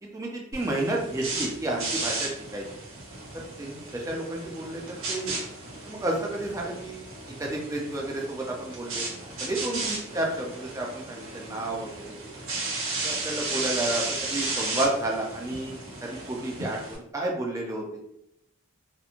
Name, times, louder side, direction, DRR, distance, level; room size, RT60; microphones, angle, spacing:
voice 1, 0.0-2.6 3.6-5.3 5.8-7.0 7.4-9.0 9.4-12.3 13.0-18.0, right 1 dB, 15° right, -1 dB, 0.4 m, -31 dB
sound 1, 0.5-17.0, right 3 dB, 85° right, 0.9 m, -34 dB
2.9 x 2.1 x 2.4 m, 0.77 s
head